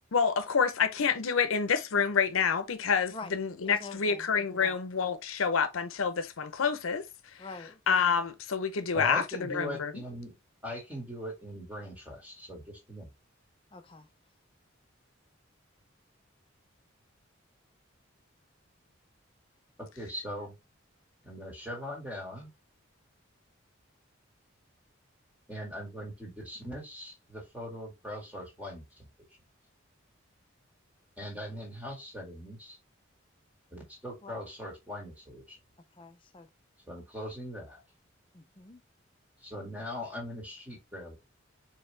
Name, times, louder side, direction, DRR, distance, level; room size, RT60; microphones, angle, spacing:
voice 1, 0.1-7.0 7.9-9.9, left 6 dB, 85° left, 0.7 m, -28 dB
voice 2, 3.6-4.3 4.6-4.8 7.4-7.8 13.7-14.1 34.2-34.3 36.0-36.5 38.3-38.8, left 3 dB, 25° left, 0.5 m, -45 dB
voice 3, 8.9-10.3 10.6-13.1 19.8-20.5 21.2-22.5 25.5-29.1 31.2-32.8 33.7-35.6 36.9-37.8 39.4-41.2, equal, 5° right, 1.8 m, -40 dB
4.6 x 3.2 x 3.2 m
head